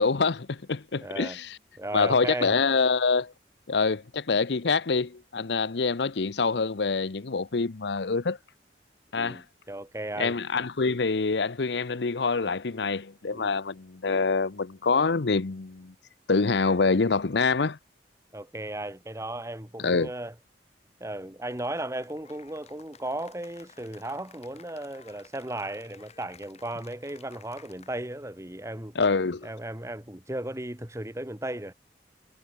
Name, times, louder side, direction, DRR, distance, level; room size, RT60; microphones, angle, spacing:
voice 1, 0.0-1.6 1.9-3.3 3.7-8.4 9.1-9.4 10.2-15.9 16.3-17.8 19.8-20.1 29.0-29.5, left 4 dB, 75° left, 0.8 m, -26 dB
voice 2, 1.0-1.4 1.8-2.6 9.1-10.4 13.3-13.6 18.3-20.3 21.0-28.9 29.4-31.7, right 1 dB, 15° right, 1.7 m, -36 dB
Cheering / Applause, 21.5-28.2, left 6 dB, 40° left, 4.4 m, -55 dB
head